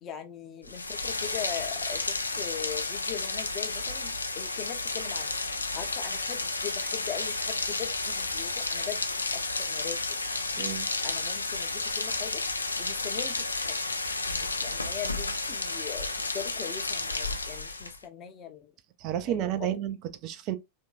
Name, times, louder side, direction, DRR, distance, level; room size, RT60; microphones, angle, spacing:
voice 1, 0.0-5.3 5.7-9.0 9.3-10.0 11.0-12.4 12.8-13.9 14.4-18.7 19.2-19.7, left 9 dB, 30° left, 0.7 m, -40 dB
Rain, 0.6-18.0, left 3 dB, 80° left, 0.4 m, -32 dB
voice 2, 10.6-10.9 19.0-20.6, right 11 dB, 40° right, 0.4 m, -31 dB
3.5 x 2.7 x 2.2 m
figure-of-eight pair, 90°, 0 cm